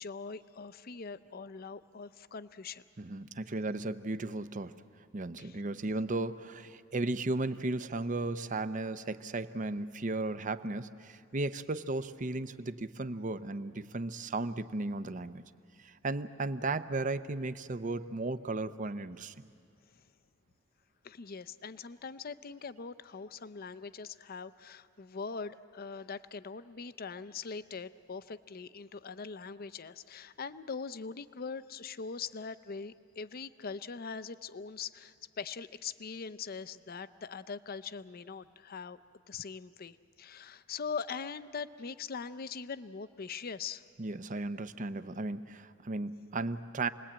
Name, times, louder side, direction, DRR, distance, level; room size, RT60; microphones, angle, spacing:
voice 1, 0.0-2.8 5.4-5.6 21.0-39.0 39.3-43.8, left 5 dB, 50° left, 14 dB, 0.6 m, -42 dB
voice 2, 3.0-4.8 5.1-15.4 15.8-19.5 44.0-46.9, right 2 dB, 40° right, 12 dB, 0.7 m, -35 dB
28.0 x 20.5 x 8.7 m, 2.3 s
head